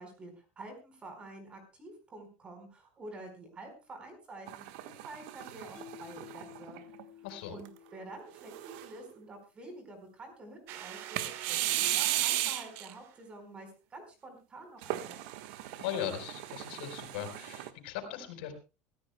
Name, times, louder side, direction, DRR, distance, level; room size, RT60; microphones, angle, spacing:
voice 1, 0.0-4.6 5.0-6.8 7.5-15.2, right 2 dB, 20° right, 6 dB, 4.6 m, -48 dB
sound 1, 4.5-7.0 7.6-7.7 8.4-9.1 11.2-12.9 14.8-17.7, right 14 dB, 70° right, 1.4 m, -35 dB
Mallet percussion, 5.8-9.0, left 11 dB, 15° left, 1.7 m, -53 dB
voice 2, 7.2-7.6 15.8-18.5, left 10 dB, 90° left, 6 dB, 4.4 m, -38 dB
sound 2, 10.7-13.2, right 11 dB, 50° right, 1.6 m, -45 dB
23.5 x 14.5 x 2.2 m, 0.30 s
cardioid pair, 160°, 5 cm